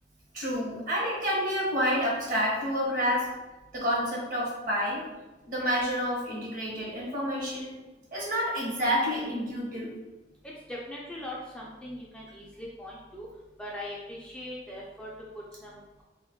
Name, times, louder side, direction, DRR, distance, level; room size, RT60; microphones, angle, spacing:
voice 1, 0.3-3.3 3.7-5.0 5.5-7.7 8.1-9.9, equal, 50° right, -4 dB, 0.9 m, -29 dB
voice 2, 10.4-13.3 13.6-16.0, left 1 dB, 5° left, -5 dB, 0.3 m, -41 dB
2.3 x 2.1 x 3.5 m, 1.1 s
head